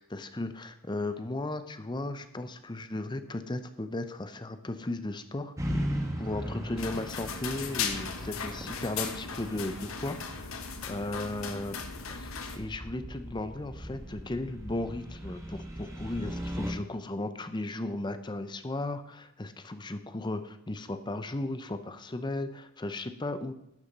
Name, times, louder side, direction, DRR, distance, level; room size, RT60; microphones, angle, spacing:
voice 1, 0.0-5.9 6.2-11.7 12.1-23.5, left 2 dB, 20° left, 11 dB, 0.6 m, -36 dB
sound 1, 5.6-16.7, equal, 15° right, 1.3 m, -38 dB
sound 2, 6.8-12.6, left 6 dB, 75° left, 1.1 m, -37 dB
11.5 x 6.9 x 5.4 m, 0.80 s
head